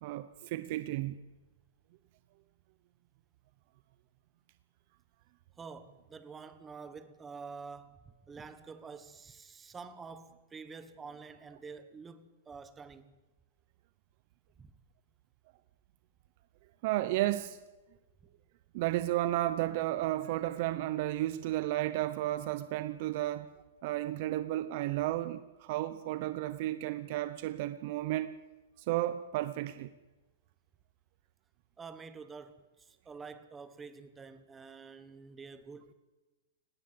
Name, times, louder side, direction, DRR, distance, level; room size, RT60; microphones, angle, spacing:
voice 1, 0.0-1.2 16.8-17.6 18.7-23.5 23.8-28.4 28.8-29.9, right 15 dB, 45° right, 0.8 m, -33 dB
voice 2, 5.6-13.2 14.6-14.7 31.8-35.9, right 5 dB, 10° right, 1.3 m, -48 dB
19.0 x 17.5 x 7.8 m
hypercardioid pair, 150°, 0 cm